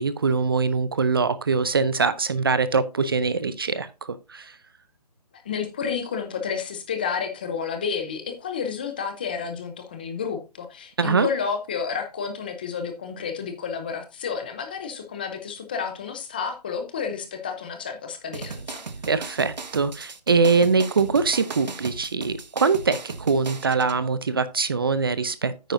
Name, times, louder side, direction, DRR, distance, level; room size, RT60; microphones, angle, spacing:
voice 1, 0.0-4.5 11.0-11.3 19.1-25.7, right 4 dB, 35° right, 0.5 m, -23 dB
voice 2, 5.4-18.8, left 6 dB, 15° left, 0.6 m, -31 dB
sound 1, 18.3-24.0, right 4 dB, 85° right, 1.2 m, -37 dB
9.4 x 9.1 x 2.6 m
hypercardioid pair, 165°, 21 cm